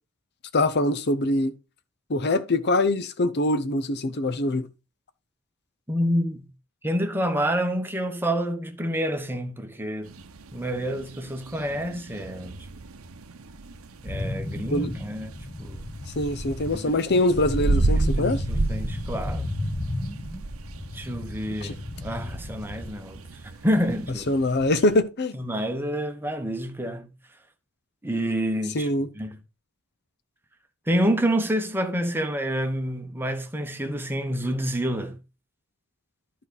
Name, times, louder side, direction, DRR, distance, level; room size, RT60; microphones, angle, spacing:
voice 1, 0.5-1.5 2.1-4.7 14.7-14.9 16.2-18.4 21.6-21.7 24.3-25.3 28.7-29.1, left 1 dB, 50° left, 0.8 m, -23 dB
voice 2, 5.9-6.5 6.8-10.1 10.5-12.5 14.0-15.9 16.7-17.0 18.0-19.5 20.9-24.4 25.3-27.1 28.0-29.4 30.9-35.2, equal, 10° right, 1.2 m, -28 dB
sound 1, 10.0-25.0, right 2 dB, 70° right, 0.8 m, -33 dB
sound 2, 14.1-22.9, left 1 dB, 25° left, 1.6 m, -33 dB
11.0 x 5.1 x 4.1 m
head